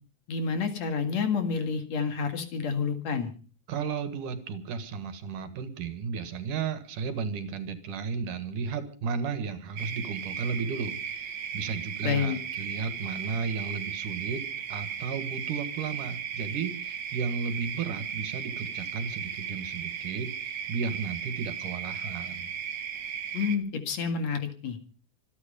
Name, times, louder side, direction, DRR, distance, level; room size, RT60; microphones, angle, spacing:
voice 1, 0.3-3.3 12.0-12.4 23.3-24.8, left 5 dB, 60° left, 8 dB, 3.0 m, -29 dB
voice 2, 3.7-22.5, right 5 dB, 80° right, 11 dB, 3.2 m, -34 dB
sound 1, 9.8-23.6, right 7 dB, 55° right, 1.3 m, -36 dB
26.0 x 9.7 x 5.2 m, 0.38 s
omnidirectional pair, 3.6 m